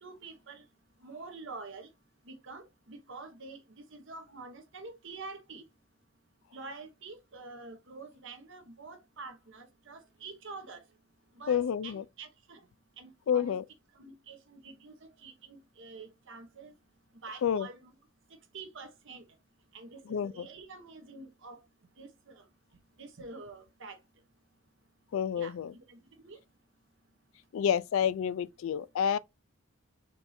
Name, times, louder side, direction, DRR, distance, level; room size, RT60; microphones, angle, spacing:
voice 1, 0.0-0.6 1.0-1.9 2.3-5.6 6.5-10.8 11.4-12.6 13.0-13.6 14.0-16.7 17.2-17.9 18.5-19.2 19.7-21.6 22.0-22.4 23.0-24.0 25.4-26.4, right 3 dB, 60° right, 1.1 m, -47 dB
voice 2, 11.5-12.0 13.3-13.6 17.4-17.7 20.1-20.4 25.1-25.7 27.5-29.2, left 8 dB, 65° left, 0.3 m, -29 dB
4.6 x 2.5 x 4.2 m
head